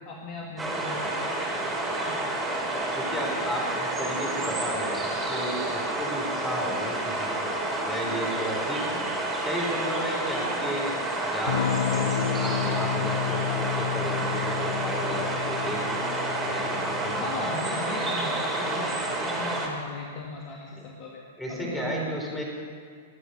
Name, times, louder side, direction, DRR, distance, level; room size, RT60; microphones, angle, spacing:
voice 1, 0.1-1.8 2.1-2.3 17.2-21.2 21.5-22.4, left 2 dB, 35° left, -1 dB, 1.9 m, -38 dB
sound 1, 0.6-19.7, right 2 dB, 15° right, 3.2 m, -29 dB
voice 2, 2.9-7.4 7.8-9.0 9.4-17.5 20.7-20.9 21.4-22.4, equal, 10° left, -2 dB, 4.6 m, -34 dB
Electric guitar / Strum, 11.5-19.8, left 10 dB, 65° left, 0.5 m, -32 dB
21.0 x 8.1 x 7.0 m, 2.1 s
figure-of-eight pair, 100°, 0 cm